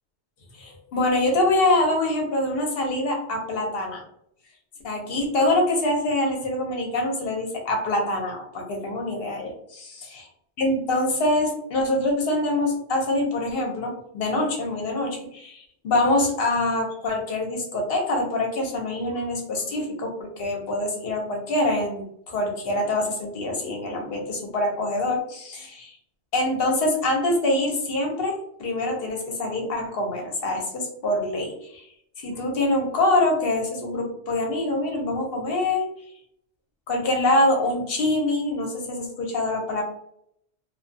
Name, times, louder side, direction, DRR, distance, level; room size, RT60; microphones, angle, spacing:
voice 1, 0.6-4.0 4.8-10.2 10.6-25.9 26.3-31.9 32.2-35.8 36.9-39.8, left 1 dB, 65° left, 1 dB, 0.9 m, -25 dB
2.3 x 2.3 x 2.6 m, 0.70 s
omnidirectional pair, 1.1 m